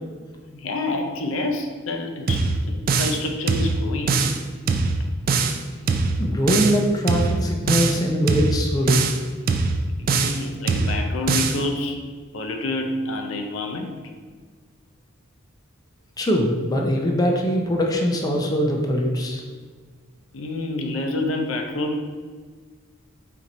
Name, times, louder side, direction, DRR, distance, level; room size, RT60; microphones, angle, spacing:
voice 1, 0.5-4.3 10.0-12.0 12.3-13.9 20.3-22.0, left 2 dB, 75° left, 4 dB, 0.5 m, -28 dB
sound 1, 2.3-3.2 3.5-4.4 4.7-5.6 5.9-6.8 7.1-8.0 8.3-9.2 9.5-10.4 10.7-11.6, right 4 dB, 45° right, 0.3 m, -22 dB
voice 2, 6.2-9.0 16.2-19.4, equal, 20° left, 0 dB, 0.4 m, -22 dB
4.4 x 2.6 x 4.1 m, 1.5 s
head